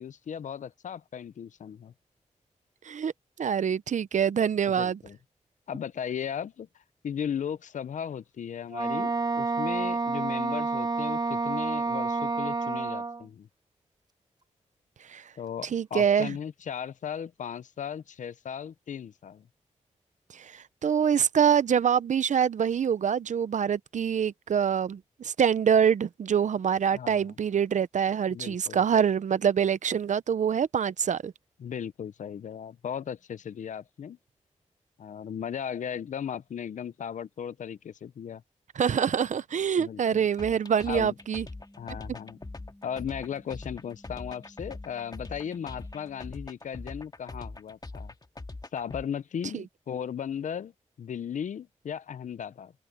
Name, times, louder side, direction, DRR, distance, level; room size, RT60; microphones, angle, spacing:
voice 1, 0.0-1.9 4.7-5.2 5.7-13.5 15.4-19.5 26.9-27.4 28.3-28.8 31.6-34.2 35.0-38.4 39.8-40.2 40.9-41.1 41.8-42.4 42.8-48.1 48.7-50.7 51.0-52.7, left 8 dB, 75° left, 0.6 m, -36 dB
voice 2, 3.4-5.0 15.1-15.2 15.7-16.3 20.3-31.3 38.8-41.4 49.5-49.6, right 8 dB, 75° right, 0.7 m, -25 dB
Wind instrument woodwind instrument, 8.7-13.2, right 3 dB, 30° right, 1.2 m, -29 dB
sound 1, 40.0-46.4, left 1 dB, 10° left, 6.6 m, -56 dB
sound 2, 40.4-49.0, left 2 dB, 30° left, 1.9 m, -42 dB
cardioid pair, 60°, 13 cm